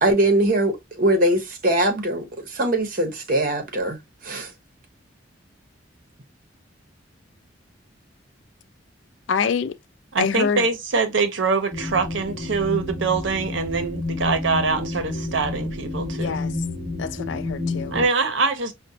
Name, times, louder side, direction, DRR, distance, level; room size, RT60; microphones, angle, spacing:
voice 1, 0.0-4.0 4.2-4.5, right 1 dB, 45° right, 0.9 m, -21 dB
voice 2, 9.3-9.8 10.2-10.7 16.2-16.6 17.0-18.0, left 6 dB, 70° left, 0.4 m, -25 dB
voice 3, 10.1-16.4 17.9-18.7, right 4 dB, 70° right, 0.7 m, -24 dB
sound 1, 11.7-18.0, left 2 dB, 10° right, 0.8 m, -30 dB
5.0 x 2.1 x 2.7 m
head